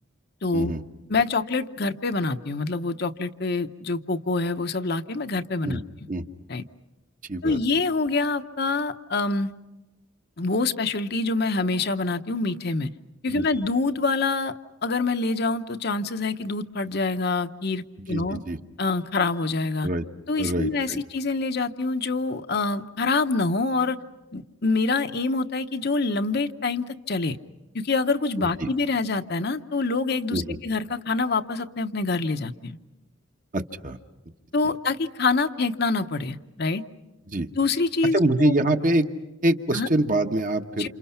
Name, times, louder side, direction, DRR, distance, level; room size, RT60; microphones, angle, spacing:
voice 1, 0.4-0.7 1.1-5.8 6.5-6.6 7.4-9.5 10.4-12.9 13.2-14.5 14.8-18.4 18.8-19.9 20.3-24.0 24.3-27.4 27.7-32.7 34.5-36.8 37.6-38.5 39.7-39.9 40.8-40.9, left 3 dB, 50° left, 8 dB, 0.9 m, -26 dB
voice 2, 7.3-7.6 13.3-13.4 18.1-18.6 19.8-20.1 20.4-21.0 28.4-28.7 30.3-30.6 33.5-34.0 34.6-34.7 37.3-37.5 38.1-39.1 39.4-40.9, right 1 dB, 40° right, 6 dB, 1.2 m, -25 dB
29.5 x 28.0 x 5.8 m, 1.1 s
head